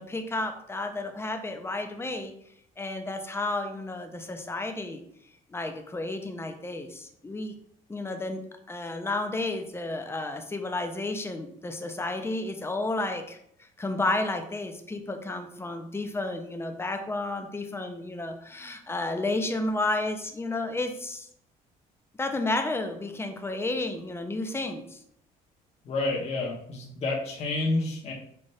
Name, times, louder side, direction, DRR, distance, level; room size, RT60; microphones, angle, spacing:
voice 1, 0.0-2.3 2.8-5.0 5.5-7.5 7.9-8.4 8.7-21.3 22.2-25.0, left 2 dB, 15° left, 5 dB, 0.6 m, -32 dB
voice 2, 25.8-28.1, left 2 dB, 40° left, -3 dB, 0.9 m, -29 dB
5.5 x 2.5 x 3.3 m, 0.68 s
cardioid pair, 110°, 17 cm